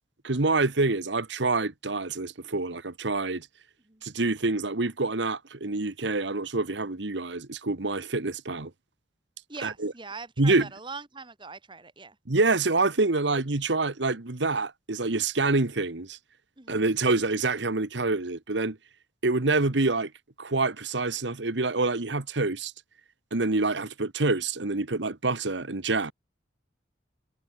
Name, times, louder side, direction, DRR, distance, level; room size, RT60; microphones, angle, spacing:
voice 1, 0.2-3.5 4.0-8.7 9.6-9.9 10.4-10.7 12.3-16.2 16.7-18.8 19.2-20.1 20.4-22.7 23.3-26.1, right 3 dB, 80° right, 1.4 m, -26 dB
voice 2, 9.5-12.2 16.6-16.8, right 4 dB, 25° right, 1.8 m, -42 dB
head